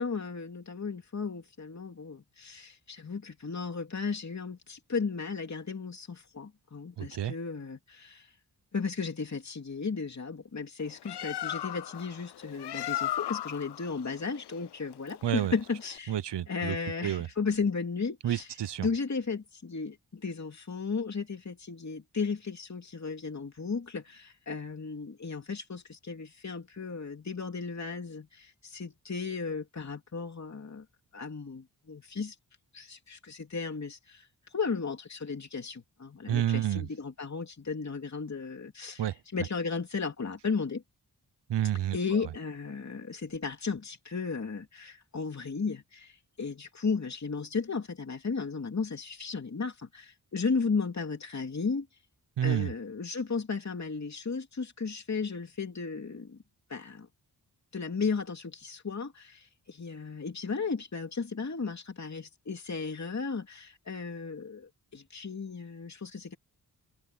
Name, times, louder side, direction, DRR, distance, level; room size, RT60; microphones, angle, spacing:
voice 1, 0.0-8.3 8.7-16.2 16.5-18.5 18.8-30.8 31.1-32.4 32.7-40.8 41.9-51.9 52.4-56.4 56.7-57.1 57.7-66.4, left 4 dB, 40° left, 2.8 m, -35 dB
voice 2, 7.0-7.3 15.2-15.5 16.1-16.8 17.0-17.3 18.2-18.9 36.3-36.9 39.0-39.2 41.5-42.2 52.4-52.7, right 11 dB, 85° right, 0.8 m, -29 dB
Bird, 10.8-16.0, left 13 dB, 75° left, 0.6 m, -37 dB
wide cardioid pair, 90°, 41 cm